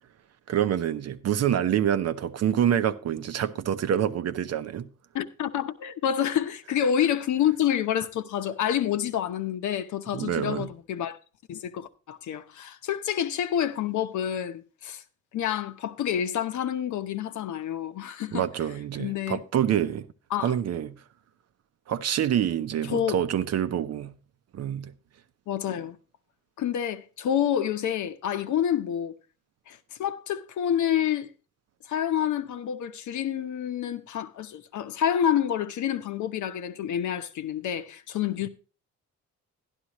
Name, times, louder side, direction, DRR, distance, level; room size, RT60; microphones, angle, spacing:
voice 1, 0.5-4.9 10.1-10.7 18.3-20.1 20.4-21.0 21.9-24.1 24.5-24.9, right 10 dB, 55° right, 0.7 m, -26 dB
voice 2, 5.1-11.2 11.5-15.0 15.3-18.4 19.0-19.4 20.3-20.5 22.9-23.2 25.5-26.0 26.6-29.1 29.7-31.3 31.9-38.5, left 9 dB, 75° left, 0.9 m, -28 dB
11.5 x 11.0 x 3.0 m
cardioid pair, 90°, 30 cm